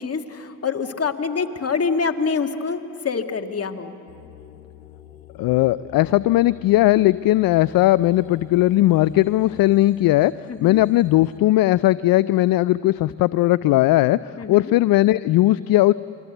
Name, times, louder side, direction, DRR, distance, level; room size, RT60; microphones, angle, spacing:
voice 1, 0.0-4.0 10.5-10.8 14.4-14.7, left 5 dB, 35° left, 6 dB, 1.8 m, -26 dB
sound 1, 4.1-11.4, left 9 dB, 90° left, 1.1 m, -46 dB
voice 2, 5.4-10.3 10.6-15.9, left 16 dB, 55° left, 18 dB, 0.5 m, -18 dB
28.0 x 22.5 x 8.0 m, 2.6 s
hypercardioid pair, 50°, 42 cm